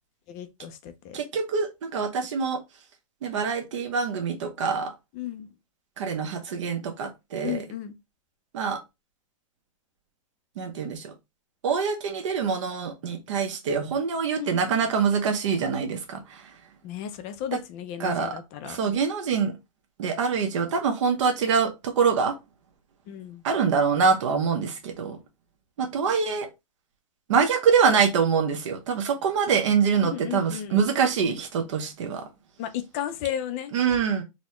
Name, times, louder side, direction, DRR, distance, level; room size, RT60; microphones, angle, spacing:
voice 1, 0.3-1.2 5.1-5.5 7.4-8.0 14.3-14.6 16.8-18.8 23.1-23.4 30.1-30.9 32.6-33.7, left 10 dB, 30° left, 0.4 m, -34 dB
voice 2, 1.1-2.6 3.2-4.9 6.0-7.6 8.5-8.8 10.6-11.1 11.6-16.5 18.0-18.3 18.6-19.5 20.0-22.3 23.4-25.2 25.8-26.5 27.3-32.3 33.7-34.2, right 6 dB, 60° right, 0.9 m, -25 dB
4.1 x 2.1 x 2.9 m
supercardioid pair, 165°, 18 cm